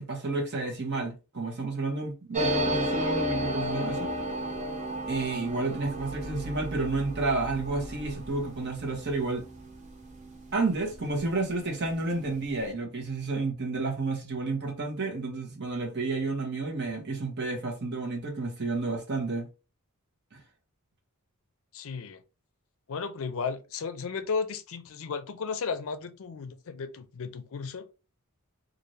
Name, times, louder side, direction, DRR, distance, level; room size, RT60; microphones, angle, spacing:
voice 1, 0.0-4.1 5.1-9.5 10.5-19.5 20.3-20.4, right 3 dB, 50° right, 1.0 m, -31 dB
sound 1, 2.3-11.5 11.8-11.9 12.1-12.7, equal, 35° right, 0.7 m, -33 dB
voice 2, 21.7-22.2 22.9-27.9, left 5 dB, 65° left, 0.5 m, -34 dB
2.6 x 2.5 x 3.1 m
head